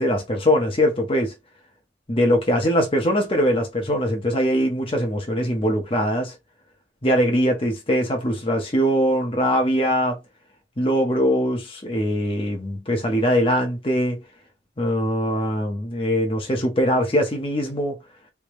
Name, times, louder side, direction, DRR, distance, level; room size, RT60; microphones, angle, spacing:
voice 1, 0.0-1.3 2.1-6.3 7.0-10.2 10.8-14.2 14.8-18.0, equal, 30° left, 0.9 m, -22 dB
3.3 x 2.8 x 3.0 m
head